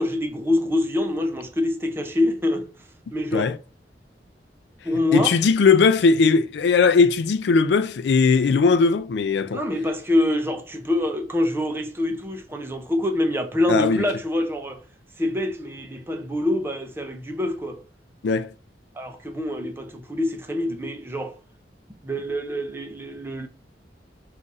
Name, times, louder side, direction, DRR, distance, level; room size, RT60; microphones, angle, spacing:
voice 1, 0.0-2.7 3.1-3.5 4.9-5.3 9.5-14.8 15.2-17.8 19.0-21.3 22.0-23.5, left 1 dB, 15° right, 0.5 m, -25 dB
voice 2, 5.1-9.6 13.7-14.1 18.2-18.5, left 4 dB, 75° left, 0.4 m, -19 dB
3.9 x 2.5 x 4.1 m
head